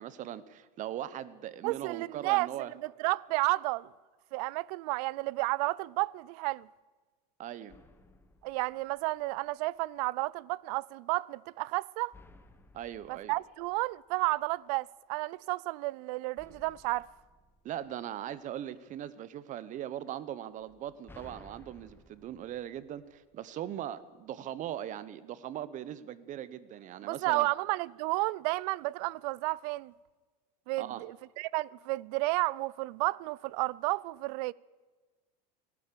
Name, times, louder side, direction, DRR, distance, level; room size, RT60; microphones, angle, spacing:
voice 1, 0.0-2.7 7.4-7.8 12.7-13.3 17.6-27.5 30.8-31.0, right 11 dB, 40° right, 0.8 m, -40 dB
voice 2, 1.6-2.5 2.8-3.9 4.3-6.7 8.4-12.1 13.1-17.1 27.1-29.9 30.7-34.5, right 22 dB, 65° right, 0.4 m, -32 dB
sound 1, 7.7-9.6 12.1-14.5 16.4-18.6 20.6-23.6, left 2 dB, 10° left, 1.0 m, -58 dB
17.5 x 12.0 x 6.8 m
supercardioid pair, 125°, 21 cm